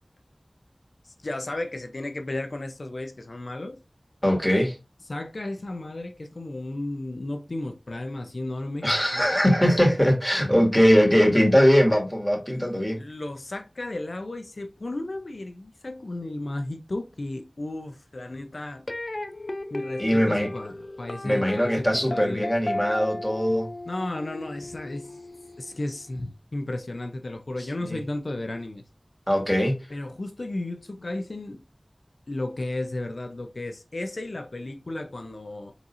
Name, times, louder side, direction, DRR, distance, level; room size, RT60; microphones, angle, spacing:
voice 1, 1.2-3.8 5.1-8.9 9.1-9.3 13.0-18.8 19.7-22.5 23.9-25.1 25.6-28.8 29.9-31.6 32.3-35.7, left 2 dB, 85° left, 0.8 m, -34 dB
voice 2, 4.2-4.8 8.8-13.0 20.0-20.5 21.2-23.7 27.8-28.0 29.3-29.8, equal, 5° left, 2.1 m, -21 dB
sound 1, 18.9-26.0, left 1 dB, 55° left, 0.6 m, -35 dB
4.6 x 3.9 x 2.7 m
wide cardioid pair, 45°, 0 cm